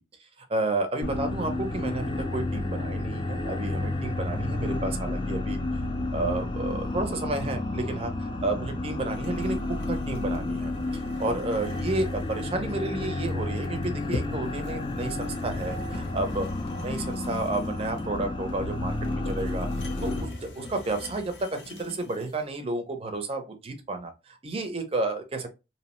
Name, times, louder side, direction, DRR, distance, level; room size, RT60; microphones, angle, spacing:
voice 1, 0.5-5.6 6.1-9.6 9.9-10.7 11.2-16.4 16.8-19.7 20.0-25.5, right 2 dB, 30° right, 0.5 m, -31 dB
sound 1, 1.0-20.2, left 2 dB, 25° left, 0.3 m, -31 dB
sound 2, 9.1-22.4, left 2 dB, 75° left, 0.7 m, -41 dB
2.8 x 2.0 x 2.9 m
head